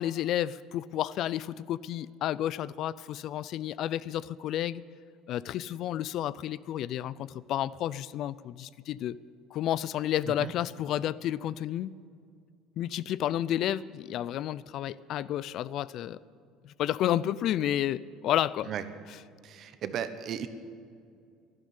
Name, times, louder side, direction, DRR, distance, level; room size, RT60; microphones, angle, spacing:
voice 1, 0.0-4.8 5.3-9.2 9.5-11.9 12.8-16.2 16.6-18.7 19.1-19.2, left 12 dB, 55° left, 19 dB, 0.4 m, -31 dB
voice 2, 19.4-20.5, right 9 dB, 50° right, 11 dB, 1.1 m, -35 dB
12.0 x 12.0 x 9.6 m, 2.3 s
cardioid pair, 130°, 0 cm